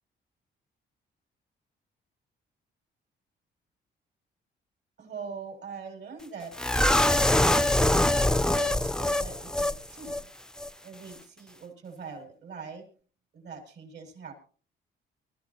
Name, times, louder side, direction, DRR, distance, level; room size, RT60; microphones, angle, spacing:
voice 1, 5.0-6.6 7.0-10.3 10.8-12.9 13.3-14.3, right 5 dB, 65° right, 4 dB, 7.3 m, -43 dB
sound 1, 6.6-9.8 10.0-10.2 10.6-10.7, left 1 dB, 5° left, 0.6 m, -24 dB
23.0 x 14.0 x 3.0 m, 0.41 s
cardioid pair, 90°, 20 cm